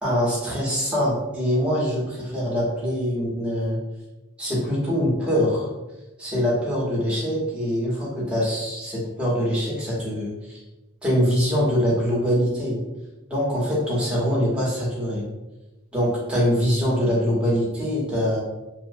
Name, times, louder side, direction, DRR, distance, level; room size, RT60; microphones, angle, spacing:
voice 1, 0.0-3.8 4.4-5.7 6.2-10.6 11.0-12.8 13.3-15.3 15.9-18.4, equal, 5° right, -7 dB, 0.8 m, -23 dB
2.5 x 2.1 x 2.5 m, 1.0 s
head